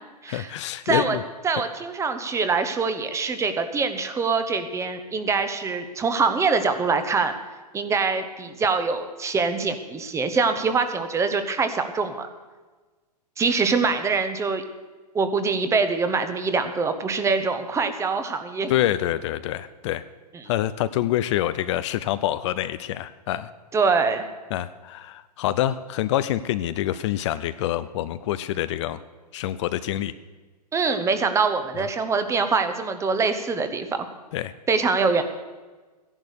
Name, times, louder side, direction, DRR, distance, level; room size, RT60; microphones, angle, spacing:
voice 1, 0.3-1.2 18.7-20.0 20.5-23.5 24.5-29.0 29.3-30.1 34.3-34.5, left 13 dB, 45° left, 13 dB, 0.6 m, -26 dB
voice 2, 0.9-1.2 1.4-7.3 7.7-12.3 13.4-14.6 15.1-18.7 23.7-24.2 30.7-34.1 34.7-35.2, right 4 dB, 15° right, 9 dB, 1.1 m, -24 dB
14.5 x 11.0 x 6.7 m, 1.3 s
hypercardioid pair, 125°, 21 cm